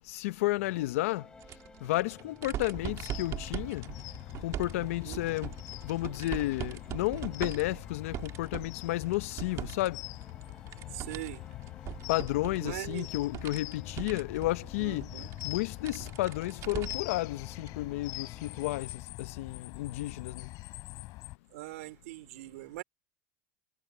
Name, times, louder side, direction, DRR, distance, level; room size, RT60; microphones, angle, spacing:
voice 1, 0.1-1.2 1.8-3.8 4.4-5.5 5.8-10.0 12.1-15.1 15.4-18.9 19.2-20.5, left 18 dB, 85° left, 0.7 m, -32 dB
sound 1, 0.6-18.8, left 3 dB, 10° left, 4.8 m, -55 dB
sound 2, 1.4-9.9 10.2-17.2 17.6-17.7 18.9-19.0, right 13 dB, 45° right, 2.9 m, -41 dB
sound 3, 2.7-21.4, left 19 dB, 55° left, 3.3 m, -43 dB
voice 2, 5.0-5.3 10.9-11.4 12.6-13.1 14.8-15.3 21.5-22.8, right 19 dB, 85° right, 3.6 m, -41 dB
supercardioid pair, 130°, 7 cm